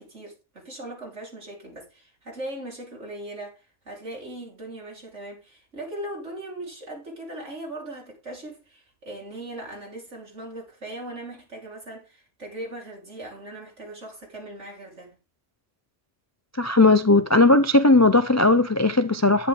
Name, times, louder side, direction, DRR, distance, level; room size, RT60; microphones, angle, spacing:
voice 1, 0.0-15.2, right 1 dB, 70° right, 4.8 m, -39 dB
voice 2, 16.6-19.5, left 2 dB, 30° left, 0.3 m, -17 dB
10.5 x 10.0 x 3.8 m
omnidirectional pair, 1.3 m